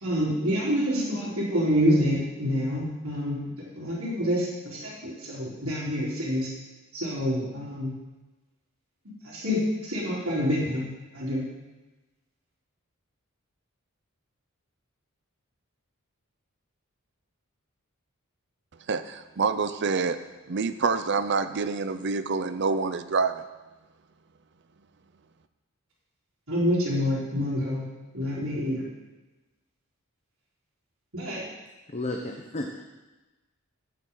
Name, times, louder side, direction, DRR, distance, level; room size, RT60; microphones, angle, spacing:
voice 1, 0.0-3.4 3.7-6.5 6.9-7.9 9.2-9.6 9.9-10.8 11.1-11.4 26.5-27.8 28.1-28.8 31.1-31.4, equal, 75° right, -10 dB, 3.9 m, -27 dB
voice 2, 18.9-20.2 20.5-23.4, right 4 dB, 55° right, 10 dB, 0.6 m, -27 dB
voice 3, 31.9-32.8, left 2 dB, 30° left, 1 dB, 0.9 m, -32 dB
14.0 x 9.1 x 3.9 m, 1.1 s
head